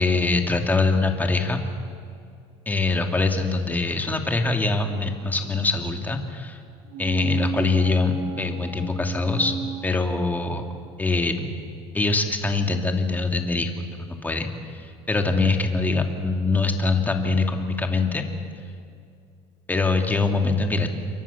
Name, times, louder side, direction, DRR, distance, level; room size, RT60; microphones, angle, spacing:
voice 1, 0.0-1.6 2.7-6.6 7.0-9.5 9.8-10.7 11.0-11.5 11.9-13.7 14.0-14.5 14.8-18.2 19.7-20.9, left 3 dB, 15° left, 4 dB, 2.6 m, -23 dB
sound 1, 6.9-10.7 11.0-11.1, right 4 dB, 65° right, 5.9 m, -33 dB
29.0 x 23.0 x 7.2 m, 2.4 s
cardioid pair, 125°, 13 cm